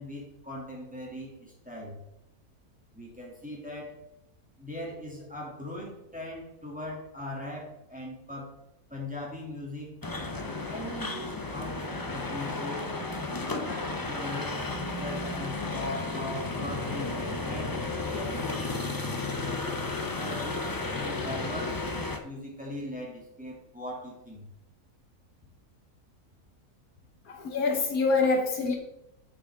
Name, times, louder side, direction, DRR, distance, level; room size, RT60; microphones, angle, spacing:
voice 1, 0.0-2.0 2.9-4.0 4.6-8.5 8.9-10.0 10.6-13.0 13.5-17.1 17.4-18.8 19.4-22.0 22.2-24.5, left 1 dB, 5° right, -4 dB, 2.6 m, -40 dB
sound 1, 10.0-22.2, left 3 dB, 30° left, 0.3 m, -33 dB
voice 2, 27.3-28.8, left 3 dB, 70° left, 3 dB, 1.6 m, -25 dB
9.1 x 6.6 x 3.6 m, 0.86 s
omnidirectional pair, 1.6 m